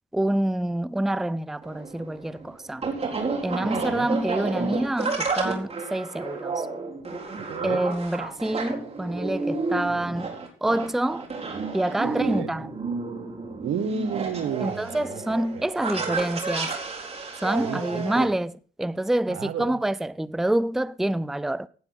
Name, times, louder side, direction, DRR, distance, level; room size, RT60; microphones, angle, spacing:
voice 1, 0.1-2.9 3.4-6.7 7.6-10.3 10.6-11.3 11.7-12.7 14.6-16.7 17.4-21.7, right 1 dB, ahead, 0.5 m, -27 dB
sound 1, 1.6-18.2, right 4 dB, 30° right, 4.3 m, -31 dB
voice 2, 3.6-4.1 7.5-7.8 12.0-12.5 13.6-15.2 15.9-16.2 17.6-18.3 19.3-19.8, right 7 dB, 80° right, 1.5 m, -32 dB
16.0 x 9.5 x 4.0 m
cardioid pair, 90°, 20 cm